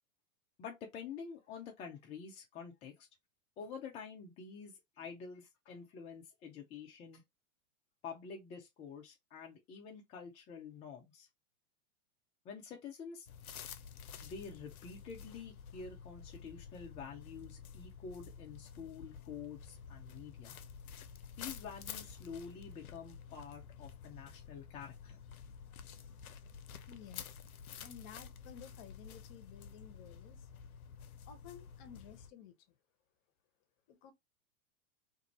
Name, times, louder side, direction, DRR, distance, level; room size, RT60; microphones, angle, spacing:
voice 1, 0.6-3.1 3.6-7.2 8.0-11.3 12.4-13.3 14.2-20.6 21.4-25.2, left 6 dB, 15° left, 0.4 m, -48 dB
sound 1, 13.3-32.3, left 7 dB, 80° left, 0.5 m, -50 dB
voice 2, 26.9-27.4 27.8-30.5 31.3-32.6 33.9-34.1, left 8 dB, 40° left, 0.8 m, -54 dB
2.6 x 2.5 x 2.8 m
figure-of-eight pair, 100°, 42 cm